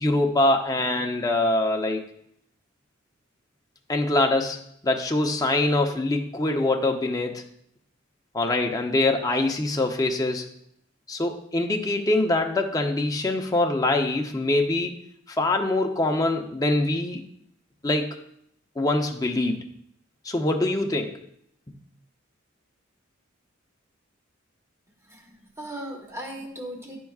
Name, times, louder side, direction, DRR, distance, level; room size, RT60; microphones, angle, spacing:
voice 1, 0.0-2.0 3.9-7.4 8.3-10.5 11.1-15.0 15.4-17.2 17.8-18.1 18.8-19.6 20.3-21.2 21.7-21.8, left 2 dB, 20° left, 3 dB, 0.7 m, -24 dB
voice 2, 25.0-27.0, right 1 dB, 15° right, 2 dB, 1.2 m, -37 dB
11.0 x 4.5 x 2.4 m, 0.71 s
head